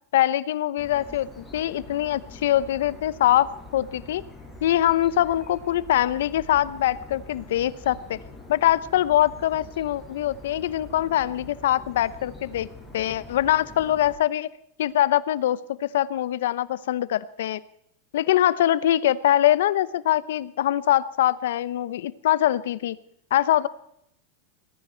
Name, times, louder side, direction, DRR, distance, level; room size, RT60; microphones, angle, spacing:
voice 1, 0.1-4.2 4.6-8.2 8.5-12.7 12.9-14.5 14.8-17.6 18.1-23.0 23.3-23.7, left 12 dB, 80° left, 18 dB, 0.7 m, -23 dB
sound 1, 0.8-14.2, left 2 dB, 5° left, 7.0 m, -44 dB
19.5 x 15.0 x 4.5 m, 0.74 s
supercardioid pair, 135°, 0 cm